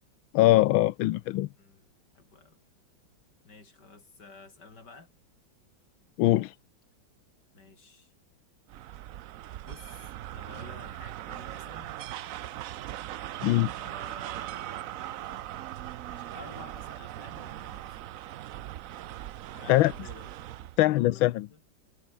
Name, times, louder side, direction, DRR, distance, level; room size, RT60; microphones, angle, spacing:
voice 1, 0.3-1.5 6.2-6.5 13.4-13.7 19.7-19.9 20.8-21.5, left 16 dB, 90° left, 1.5 m, -22 dB
voice 2, 1.6-2.6 3.4-5.1 7.5-8.1 9.6-12.0 13.8-15.5 16.1-18.0 19.5-21.6, left 3 dB, 60° left, 4.6 m, -52 dB
sound 1, 8.7-20.8, right 13 dB, 85° right, 0.7 m, -40 dB
omnidirectional pair, 2.1 m